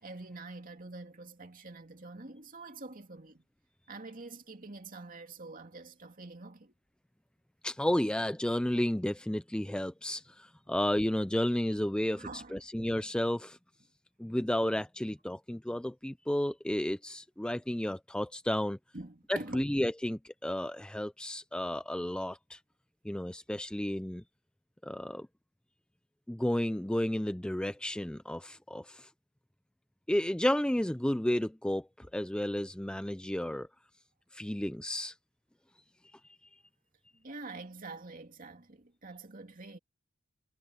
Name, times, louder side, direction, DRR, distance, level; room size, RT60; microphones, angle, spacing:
voice 1, 0.0-3.4 3.9-6.7 12.2-12.6 18.9-19.7 37.1-39.8, right 2 dB, 40° right, 2.5 m, -46 dB
voice 2, 7.6-13.6 14.2-18.8 19.3-22.6 23.0-24.2 24.8-25.3 26.3-29.1 30.1-33.7 34.3-35.1, left 1 dB, 5° left, 0.4 m, -32 dB
head